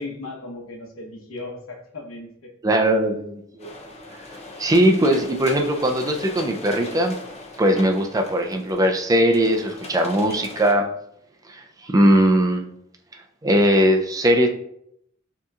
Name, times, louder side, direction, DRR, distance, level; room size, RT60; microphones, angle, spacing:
voice 1, 0.0-2.5, left 2 dB, 75° left, 0 dB, 1.0 m, -36 dB
voice 2, 2.6-3.7 4.6-7.2 7.6-10.9 11.5-12.7 13.4-14.5, equal, 15° right, 4 dB, 0.4 m, -19 dB
sound 1, 3.6-10.7, left 2 dB, 30° left, 0.6 m, -39 dB
6.7 x 2.9 x 2.4 m, 0.72 s
head